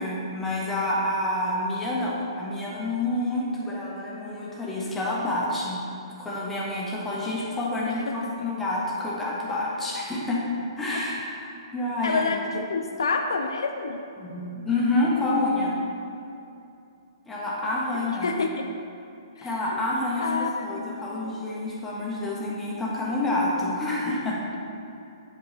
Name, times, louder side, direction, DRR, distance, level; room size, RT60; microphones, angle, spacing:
voice 1, 0.0-5.8 6.2-10.4 10.8-12.3 14.2-15.7 17.3-18.3 19.4-24.4, left 2 dB, 10° left, -5 dB, 1.3 m, -28 dB
voice 2, 12.0-14.0 18.2-18.6 19.4-19.5 20.2-21.4, left 4 dB, 65° left, 4 dB, 0.4 m, -28 dB
7.8 x 4.6 x 4.1 m, 2.6 s
figure-of-eight pair, 120°, 3 cm